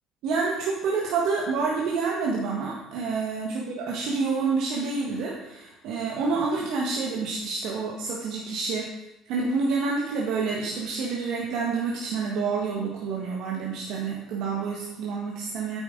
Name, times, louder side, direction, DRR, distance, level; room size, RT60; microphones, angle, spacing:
voice 1, 0.2-8.9 9.3-15.8, right 4 dB, 65° right, -3 dB, 1.6 m, -28 dB
9.8 x 8.8 x 3.9 m, 0.93 s
hypercardioid pair, 60°, 0 cm